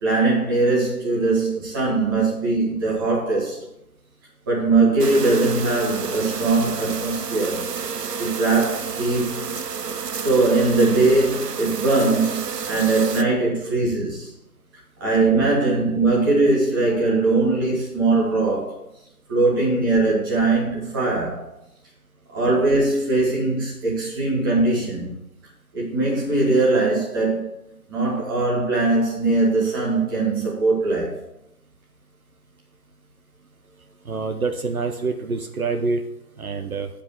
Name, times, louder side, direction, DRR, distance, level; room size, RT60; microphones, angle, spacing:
voice 1, 0.0-3.6 4.5-7.6 8.2-9.4 10.1-14.3 15.0-18.8 19.3-21.5 22.3-25.1 25.7-27.5 27.9-31.2, right 3 dB, 15° right, 1.6 m, -21 dB
sound 1, 5.0-13.2, right 6 dB, 90° right, 0.8 m, -30 dB
voice 2, 34.1-36.0 36.4-36.9, right 4 dB, 65° right, 1.0 m, -26 dB
8.8 x 5.2 x 6.7 m
figure-of-eight pair, 160°, 47 cm